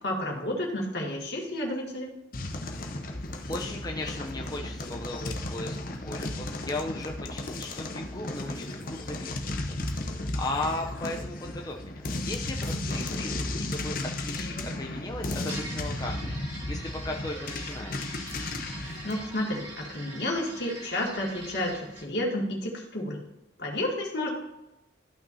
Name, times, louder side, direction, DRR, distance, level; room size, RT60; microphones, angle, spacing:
voice 1, 0.0-2.1 19.0-21.7 22.0-23.2 23.6-24.3, left 1 dB, 65° left, -2 dB, 2.2 m, -31 dB
sound 1, 2.3-19.2, left 2 dB, 50° left, 0.8 m, -34 dB
voice 2, 3.5-18.1, left 2 dB, 20° left, 1 dB, 0.5 m, -37 dB
sound 2, 15.4-22.1, right 2 dB, 40° right, 1.8 m, -43 dB
13.5 x 5.8 x 2.7 m, 0.92 s
head